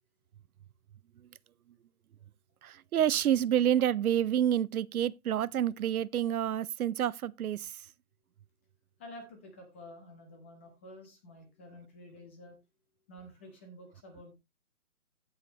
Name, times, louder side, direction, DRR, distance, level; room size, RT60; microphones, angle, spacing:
voice 1, 2.6-7.8, right 10 dB, 75° right, 0.6 m, -28 dB
voice 2, 9.0-12.6 13.1-14.3, left 1 dB, 10° left, 0.8 m, -50 dB
16.0 x 5.7 x 3.0 m
hypercardioid pair, 170°, 44 cm